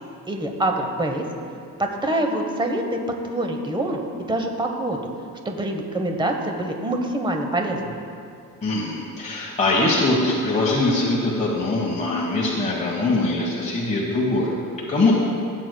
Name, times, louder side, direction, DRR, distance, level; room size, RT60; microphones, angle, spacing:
voice 1, 0.3-1.2 1.8-3.0 3.2-5.1 5.4-8.0, right 1 dB, 15° right, 3 dB, 0.9 m, -25 dB
voice 2, 8.6-14.5 14.9-15.1, left 2 dB, 20° left, -4 dB, 1.2 m, -22 dB
16.5 x 7.9 x 2.2 m, 2.4 s
cardioid pair, 120°, 34 cm